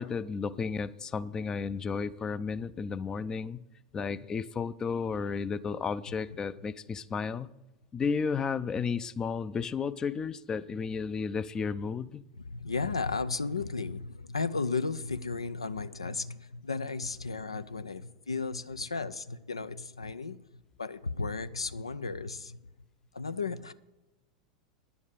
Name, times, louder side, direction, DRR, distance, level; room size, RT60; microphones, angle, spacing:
voice 1, 0.0-3.6 3.9-7.5 7.9-12.2, left 5 dB, 25° left, 17 dB, 0.4 m, -33 dB
voice 2, 12.4-22.6 23.1-23.7, left 4 dB, 85° left, 14 dB, 0.4 m, -34 dB
10.0 x 7.1 x 6.5 m, 1.0 s
figure-of-eight pair, 85°, 3 cm